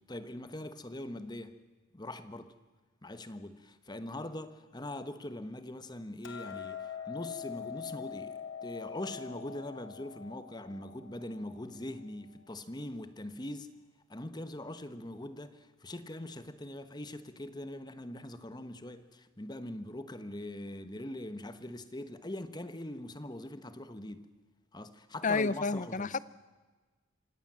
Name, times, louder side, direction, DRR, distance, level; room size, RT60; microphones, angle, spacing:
voice 1, 0.0-1.6 1.9-2.5 3.0-13.7 14.1-24.3 24.7-26.2, left 1 dB, 20° left, 1.1 m, -42 dB
Hammer, 6.2-12.5, left 7 dB, 70° left, 2.5 m, -44 dB
voice 2, 25.2-26.2, left 4 dB, 40° left, 0.6 m, -30 dB
25.5 x 17.5 x 7.5 m
head